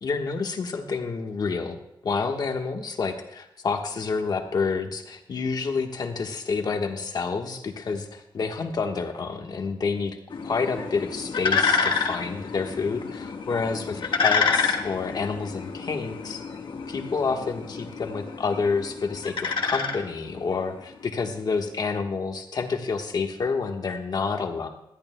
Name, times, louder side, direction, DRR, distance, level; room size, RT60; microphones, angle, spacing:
voice 1, 0.0-1.8 2.0-10.2 10.4-16.4 16.9-24.7, left 4 dB, 55° left, 4 dB, 1.3 m, -28 dB
sound 1, 10.3-20.6, left 5 dB, 75° left, 1.3 m, -28 dB
20.0 x 13.5 x 2.2 m, 0.83 s
wide cardioid pair, 155°, 8 cm